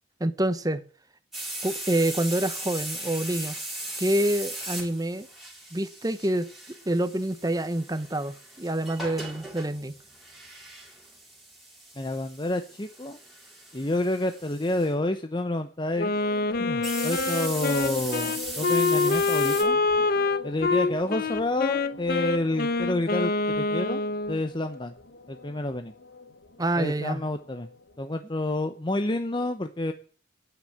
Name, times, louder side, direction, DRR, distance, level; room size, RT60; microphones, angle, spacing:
voice 1, 0.2-0.8 1.6-3.6 4.0-5.3 5.7-9.9 26.6-27.2, right 1 dB, 20° right, 1.0 m, -27 dB
sound 1, 1.3-14.9 16.8-19.6, right 1 dB, ahead, 3.5 m, -38 dB
voice 2, 12.0-13.2 13.7-16.1 16.6-19.8 20.4-24.0 24.3-24.9 25.3-25.9 26.8-27.7 28.0-29.9, left 1 dB, 25° left, 0.8 m, -29 dB
Wind instrument woodwind instrument, 16.0-24.4, left 3 dB, 50° left, 0.9 m, -26 dB
sound 2, 16.1-28.0, left 3 dB, 70° left, 2.1 m, -42 dB
11.0 x 9.2 x 8.6 m
head